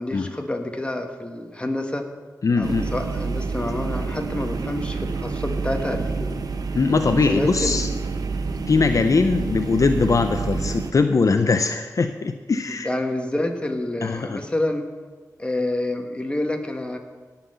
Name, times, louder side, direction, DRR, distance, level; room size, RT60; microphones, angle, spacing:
voice 1, 0.0-2.1 2.6-6.4 7.2-7.8 12.7-14.8 15.4-17.0, left 1 dB, 15° left, 4 dB, 1.5 m, -28 dB
voice 2, 2.4-2.9 6.7-7.9 8.7-12.9 14.0-14.4, left 4 dB, 60° left, 8 dB, 0.6 m, -21 dB
sound 1, 2.6-10.9, right 4 dB, 75° right, 0.9 m, -28 dB
17.0 x 5.8 x 6.8 m, 1.4 s
wide cardioid pair, 70°, 6 cm